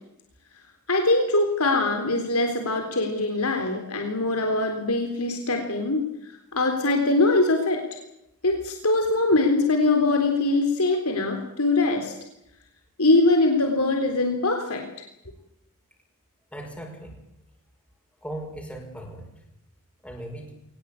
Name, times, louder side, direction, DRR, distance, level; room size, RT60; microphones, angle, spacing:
voice 1, 0.9-6.1 6.5-7.8 8.4-12.1 13.0-14.9, left 2 dB, 75° left, 4 dB, 3.7 m, -22 dB
voice 2, 16.5-17.2 18.2-19.4 20.0-20.5, right 1 dB, 5° left, 1 dB, 5.3 m, -38 dB
23.0 x 20.0 x 8.5 m, 0.82 s
head